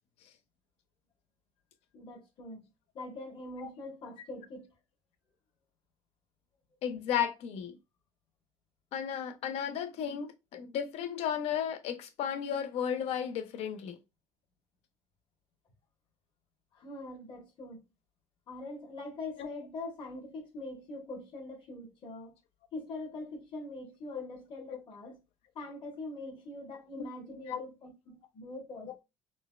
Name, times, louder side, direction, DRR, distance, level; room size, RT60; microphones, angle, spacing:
voice 1, 1.9-2.7 2.9-4.7 16.7-17.8 18.5-22.4 22.7-25.2 25.5-29.0, left 2 dB, 45° left, 1.3 m, -43 dB
voice 2, 6.8-7.7 8.9-14.0 19.4-19.5 24.1-24.3 24.7-24.8 27.0-27.1 27.5-27.6, left 8 dB, 65° left, 0.5 m, -34 dB
3.9 x 2.2 x 2.3 m
cardioid pair, 125°, 11 cm